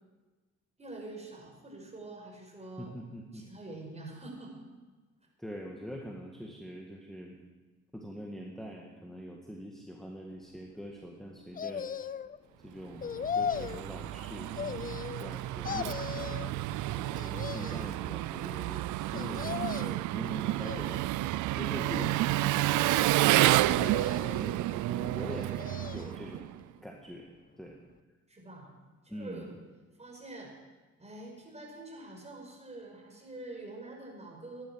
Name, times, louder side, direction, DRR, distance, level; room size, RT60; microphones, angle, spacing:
voice 1, 0.8-2.9 3.3-4.6 28.3-28.8 29.0-29.6 30.0-30.5 31.0-34.6, right 2 dB, 20° right, 0 dB, 5.3 m, -45 dB
voice 2, 2.8-3.5 5.4-7.4 7.9-11.9 12.6-21.0 21.5-25.6 25.8-26.5 26.8-27.8 29.1-29.5, equal, ahead, 0 dB, 1.8 m, -44 dB
sound 1, 11.6-12.4 13.0-13.8 14.6-15.3 15.6-16.5 17.1-18.0 19.1-20.1 20.6-21.3 21.9-22.7 23.7-24.5 25.3-26.2 26.6-26.7, left 7 dB, 30° left, 0.5 m, -38 dB
Engine, 13.0-26.6, right 16 dB, 75° right, 0.4 m, -30 dB
15.5 x 11.5 x 6.4 m, 1.2 s
cardioid pair, 90°, 30 cm